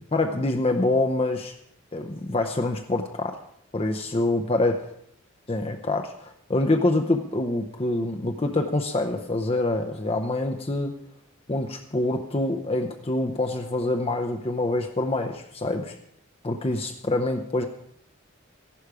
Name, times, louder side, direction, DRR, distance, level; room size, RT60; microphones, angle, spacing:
voice 1, 0.1-1.5 1.9-3.4 3.7-4.8 5.5-11.0 11.5-16.0 16.4-17.7, left 2 dB, 30° left, 5 dB, 0.7 m, -26 dB
14.5 x 11.5 x 4.9 m, 0.70 s
head